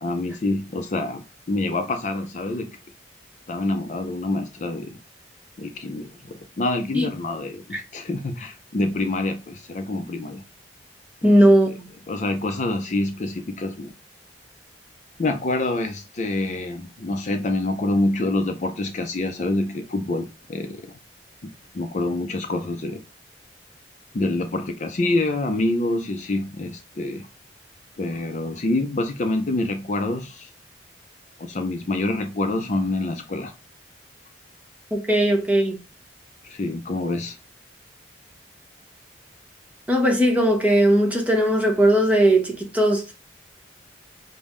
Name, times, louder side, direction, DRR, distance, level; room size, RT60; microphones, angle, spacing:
voice 1, 0.0-2.7 3.5-5.0 5.6-10.4 11.2-11.3 11.7-11.8 12.1-13.9 15.2-20.9 21.7-23.0 24.1-27.3 28.0-30.5 31.4-33.5 36.4-37.4, left 2 dB, 40° left, 0.5 m, -26 dB
voice 2, 11.2-11.9 34.9-35.8 39.9-43.2, right 1 dB, 10° right, 0.8 m, -18 dB
5.3 x 2.1 x 3.0 m
head